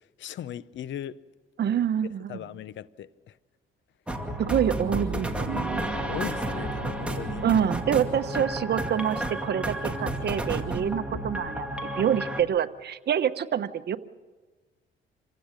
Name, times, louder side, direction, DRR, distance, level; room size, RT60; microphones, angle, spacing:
voice 1, 0.2-1.2 2.3-3.3 6.1-7.4, left 11 dB, 70° left, 0.7 m, -38 dB
voice 2, 1.6-2.5 4.4-5.9 7.4-11.7 12.0-14.0, right 9 dB, 55° right, 1.0 m, -26 dB
sound 1, 4.1-12.4, right 1 dB, 5° right, 2.4 m, -31 dB
27.0 x 16.0 x 6.6 m
cardioid pair, 90°, 20 cm